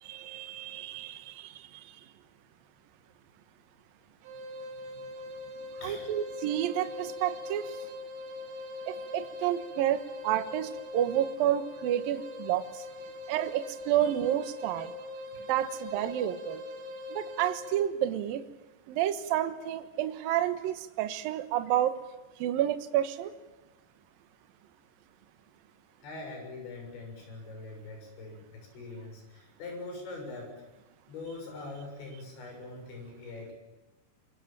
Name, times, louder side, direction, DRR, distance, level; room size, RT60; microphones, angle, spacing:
voice 1, 0.0-2.0 5.8-7.8 8.9-12.8 13.3-15.0 15.5-16.6 17.1-18.4 18.9-21.9 22.4-23.3, right 11 dB, 65° right, 10 dB, 2.7 m, -30 dB
sound 1, 4.2-17.9, left 2 dB, 90° right, 4.9 m, -42 dB
voice 2, 26.0-30.6 31.1-33.5, left 3 dB, 80° left, 2 dB, 9.2 m, -43 dB
24.5 x 23.0 x 8.9 m, 1.1 s
omnidirectional pair, 5.1 m